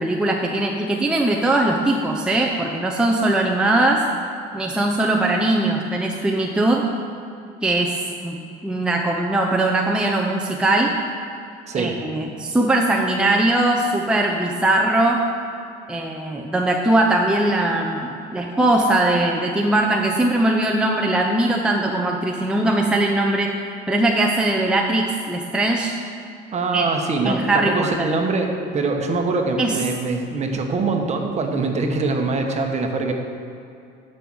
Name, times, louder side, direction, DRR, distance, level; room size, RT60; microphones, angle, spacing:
voice 1, 0.0-4.0 4.5-6.8 7.6-8.0 8.2-10.9 11.8-15.2 15.9-23.5 23.9-25.9 26.7-26.9 27.2-28.1 29.6-29.8, right 2 dB, 5° right, 0 dB, 0.7 m, -20 dB
voice 2, 26.5-33.1, right 3 dB, 35° right, 3 dB, 1.2 m, -23 dB
11.0 x 5.5 x 6.2 m, 2.6 s
cardioid pair, 125°, 20 cm